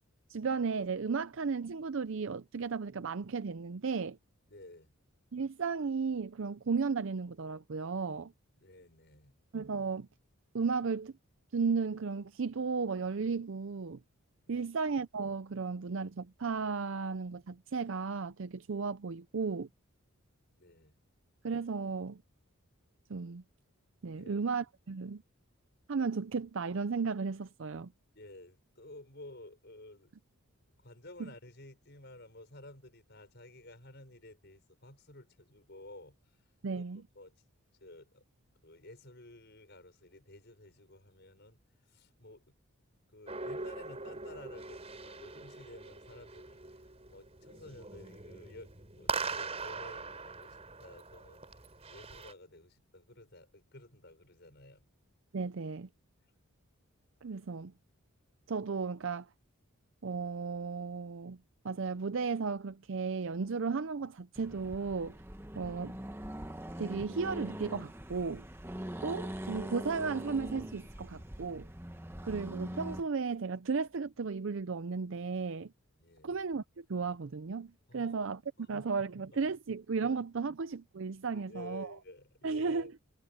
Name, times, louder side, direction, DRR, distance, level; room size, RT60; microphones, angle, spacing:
voice 1, 0.3-4.2 5.3-8.3 9.5-10.1 10.5-11.1 11.5-14.0 14.5-19.7 21.4-22.2 23.1-23.4 24.0-25.2 25.9-27.9 31.2-31.3 36.6-37.0 55.3-55.9 57.2-57.7 58.5-59.3 60.0-61.4 61.6-65.2 65.6-66.0 66.8-68.5 69.0-71.7 72.2-75.7 76.2-78.4 78.7-82.0 82.4-82.9, right 5 dB, 55° right, 0.5 m, -34 dB
voice 2, 4.5-4.9 8.6-9.3 14.5-14.7 20.6-20.9 24.1-24.4 28.1-30.1 30.8-36.2 36.8-36.9 37.1-37.3 37.8-38.2 38.6-41.6 41.9-42.5 43.1-46.8 47.1-51.4 51.9-54.9 76.0-76.4 77.9-78.2 78.6-78.9 79.2-79.3 81.3-82.9, left 1 dB, 50° left, 6.2 m, -52 dB
sound 1, 43.3-52.3, right 4 dB, 30° right, 5.1 m, -42 dB
Accelerating revving vroom, 64.3-73.1, equal, 10° right, 1.1 m, -43 dB
head